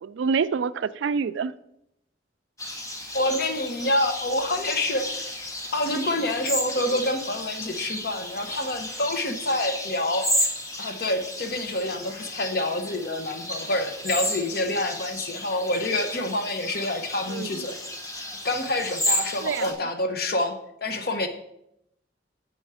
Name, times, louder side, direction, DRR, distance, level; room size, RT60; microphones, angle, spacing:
voice 1, 0.0-1.5 17.3-17.5 19.4-19.7, right 5 dB, 85° right, 16 dB, 0.3 m, -26 dB
sound 1, 2.6-19.7, equal, 15° left, 1.1 m, -33 dB
voice 2, 3.1-5.4 5.7-10.5 10.8-18.1 18.4-21.3, left 1 dB, 55° left, 7 dB, 0.9 m, -27 dB
7.1 x 5.7 x 4.8 m, 0.80 s
head